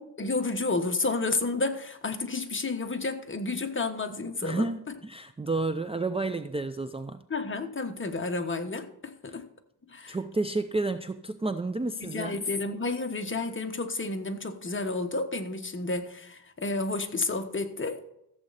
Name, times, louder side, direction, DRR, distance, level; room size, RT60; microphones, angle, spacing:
voice 1, 0.2-4.7 7.3-9.5 9.9-10.2 12.0-18.1, left 3 dB, 30° left, 1.3 m, -31 dB
voice 2, 4.4-7.2 10.1-12.4, right 2 dB, 15° right, 0.5 m, -31 dB
14.5 x 7.7 x 4.1 m
cardioid pair, 95°, 42 cm